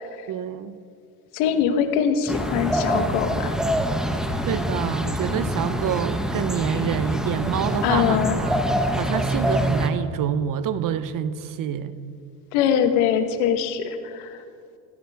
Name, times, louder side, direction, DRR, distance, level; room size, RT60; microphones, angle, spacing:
voice 1, 0.3-0.8 4.4-8.6 8.9-12.0, right 9 dB, 50° right, 13 dB, 0.9 m, -27 dB
voice 2, 1.3-3.5 7.8-8.4 12.5-14.4, left 8 dB, 90° left, 8 dB, 1.3 m, -22 dB
sound 1, 2.3-9.9, equal, ahead, 1.1 m, -25 dB
18.0 x 15.5 x 3.5 m, 2.3 s
supercardioid pair, 95°, 43 cm